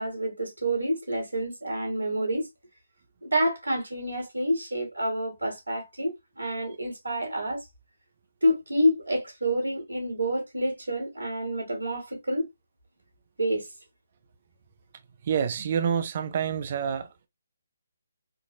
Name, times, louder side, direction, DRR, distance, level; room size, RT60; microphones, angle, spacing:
voice 1, 0.0-2.5 3.2-7.6 8.4-12.4 13.4-13.7, equal, 90° right, 2.4 m, -28 dB
voice 2, 15.2-17.1, right 7 dB, 45° right, 0.6 m, -27 dB
4.5 x 2.5 x 2.8 m
figure-of-eight pair, 145°, 0 cm